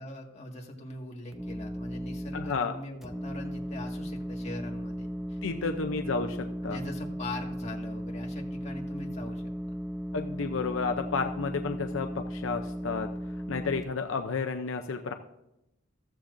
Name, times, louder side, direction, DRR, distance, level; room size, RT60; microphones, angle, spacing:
voice 1, 0.0-5.8 6.6-9.4 9.7-9.8, left 1 dB, 35° left, 0 dB, 1.9 m, -41 dB
sound 1, 1.3-2.5 3.0-13.8, equal, ahead, 0.7 m, -36 dB
voice 2, 2.3-2.7 5.4-6.8 10.1-13.1 13.5-15.1, left 4 dB, 80° left, 6 dB, 0.6 m, -31 dB
14.5 x 14.0 x 2.6 m, 0.89 s
head